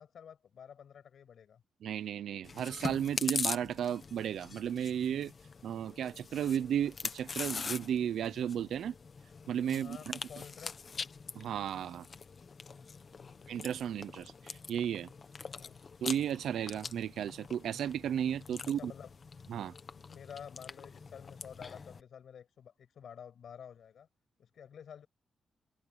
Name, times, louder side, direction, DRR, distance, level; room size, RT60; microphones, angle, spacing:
voice 1, 0.0-1.6 9.7-10.8 13.1-13.5 15.4-15.8 18.7-19.1 19.9-24.1 24.4-25.1, left 8 dB, 65° left, 6.6 m, -50 dB
voice 2, 1.8-5.3 5.6-8.9 9.5-10.0 11.4-12.1 13.5-15.1 16.0-18.9 19.5-19.7, right 9 dB, 85° right, 0.6 m, -34 dB
Chewing mastication, 2.4-22.0, left 5 dB, 40° left, 1.2 m, -43 dB
wide cardioid pair, 135°, 0 cm